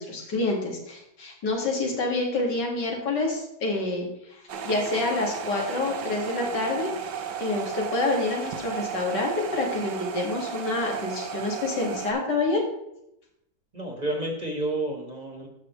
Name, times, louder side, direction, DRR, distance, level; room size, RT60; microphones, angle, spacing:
voice 1, 0.0-6.9 7.4-12.6, left 2 dB, 80° left, 0 dB, 2.6 m, -27 dB
sound 1, 4.5-12.1, right 7 dB, 85° right, 1.5 m, -34 dB
voice 2, 13.7-15.5, right 1 dB, 25° right, 1 dB, 1.4 m, -30 dB
14.0 x 5.9 x 3.1 m, 0.81 s
omnidirectional pair, 1.8 m